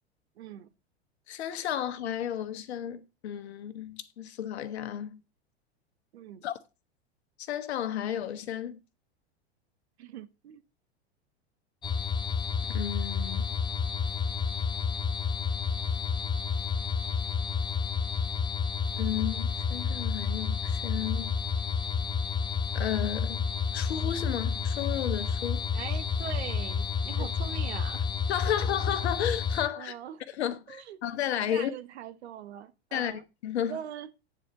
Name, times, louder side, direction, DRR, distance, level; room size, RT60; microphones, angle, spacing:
voice 1, 0.4-0.7 6.1-6.4 10.0-10.6 25.7-28.1 28.4-28.8 29.7-30.2 30.7-31.0 31.4-33.2 33.7-34.1, right 10 dB, 75° right, 1.1 m, -42 dB
voice 2, 1.3-5.2 6.4-6.6 7.4-8.8 12.7-13.5 19.0-21.3 22.7-23.5 23.7-25.6 28.3-29.9 30.3-31.7 32.9-33.8, left 10 dB, 75° left, 1.2 m, -33 dB
sound 1, 11.8-29.7, left 6 dB, 15° left, 0.4 m, -30 dB
9.4 x 4.3 x 5.2 m
hypercardioid pair, 100°, 33 cm